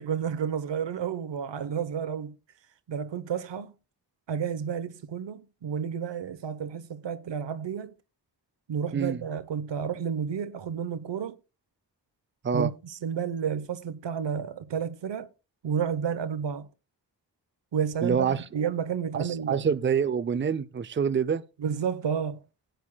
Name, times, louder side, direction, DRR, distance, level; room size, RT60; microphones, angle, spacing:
voice 1, 0.0-2.3 2.9-3.7 4.3-7.9 8.7-11.4 12.5-15.3 15.6-16.7 17.7-19.6 21.6-22.4, right 7 dB, 85° right, 0.9 m, -31 dB
voice 2, 18.0-18.4 19.1-21.4, right 6 dB, 30° right, 0.5 m, -26 dB
17.5 x 9.1 x 2.2 m
wide cardioid pair, 85°, 43 cm